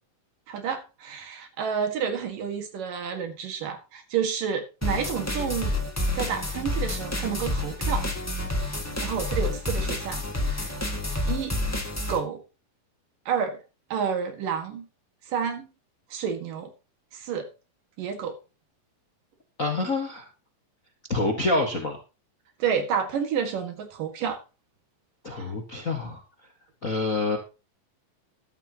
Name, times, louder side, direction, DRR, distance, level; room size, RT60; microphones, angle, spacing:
voice 1, 0.5-5.7 6.2-8.1 9.0-10.8 11.3-11.6 12.1-12.4 13.3-13.6 13.9-14.9 15.3-15.7 16.1-16.7 17.1-17.5 18.0-18.4 22.6-24.4 25.3-25.6, right 7 dB, 70° right, 6 dB, 3.5 m, -30 dB
sound 1, 4.8-12.2, left 2 dB, 15° left, 0.6 m, -29 dB
voice 2, 19.6-20.3 21.1-22.0 25.2-26.2 26.8-27.4, left 2 dB, 40° left, 2 dB, 1.2 m, -27 dB
13.5 x 12.0 x 3.0 m, 0.30 s
omnidirectional pair, 4.0 m